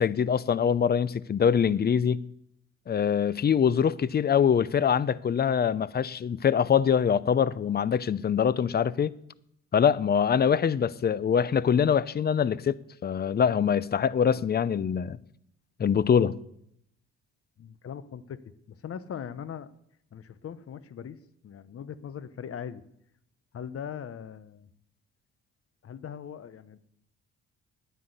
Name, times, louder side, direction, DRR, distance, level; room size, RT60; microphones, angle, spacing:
voice 1, 0.0-2.2 2.9-9.1 9.7-12.8 13.0-15.2 15.8-16.4, left 7 dB, 35° left, 0.6 m, -24 dB
voice 2, 17.6-18.4 18.7-19.7 20.1-22.8 23.5-24.7 25.8-26.8, left 8 dB, 50° left, 1.0 m, -40 dB
10.5 x 9.7 x 8.0 m
cardioid pair, 90°, 30 cm